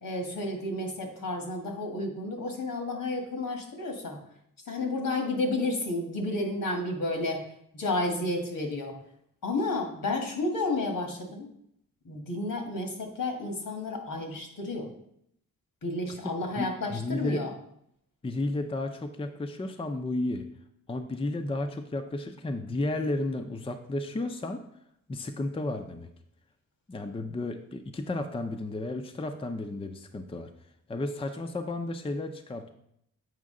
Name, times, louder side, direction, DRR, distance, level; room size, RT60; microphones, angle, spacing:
voice 1, 0.0-4.2 4.7-7.4 7.7-8.9 9.4-11.5 12.0-14.9 15.8-17.5, left 2 dB, 70° left, 3 dB, 1.6 m, -31 dB
voice 2, 16.6-17.4 18.2-20.5 20.9-24.6 25.1-26.1 26.9-30.5 30.9-32.7, left 2 dB, 15° left, 6 dB, 0.5 m, -33 dB
7.4 x 5.0 x 3.7 m, 0.73 s
cardioid pair, 90°, 34 cm